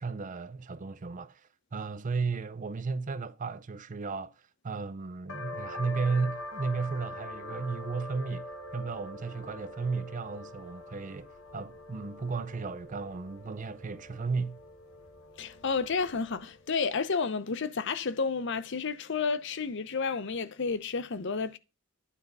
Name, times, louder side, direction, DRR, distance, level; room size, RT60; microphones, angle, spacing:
voice 1, 0.0-14.6, right 4 dB, 35° right, 0.5 m, -34 dB
sound 1, 5.3-16.6, left 2 dB, 80° left, 1.4 m, -44 dB
voice 2, 15.4-21.6, left 5 dB, 60° left, 0.7 m, -31 dB
9.9 x 3.6 x 5.4 m
head